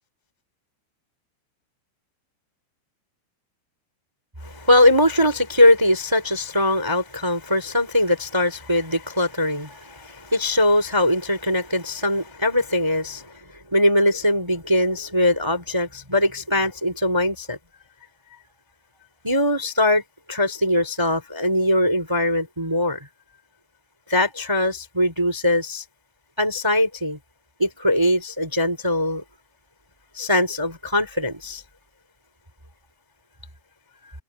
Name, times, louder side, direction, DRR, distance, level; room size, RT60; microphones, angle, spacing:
voice 1, 4.4-13.3 13.7-17.6 19.2-20.0 20.3-23.1 24.1-25.8 26.4-27.2 27.6-29.2 30.1-31.6, left 1 dB, 15° right, 1.0 m, -21 dB
omnidirectional pair, 5.5 m